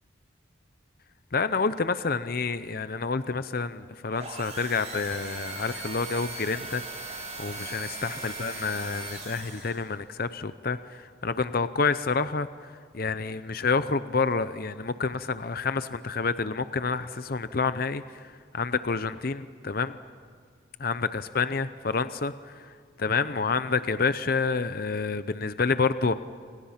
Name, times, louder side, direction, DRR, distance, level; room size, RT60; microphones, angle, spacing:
voice 1, 1.3-6.8 7.4-12.5 12.9-18.2 18.5-20.0 20.8-26.1, left 4 dB, 45° left, 12 dB, 0.6 m, -28 dB
sound 1, 4.1-9.9, right 3 dB, 35° right, 6.2 m, -39 dB
28.0 x 27.0 x 5.8 m, 2.1 s
head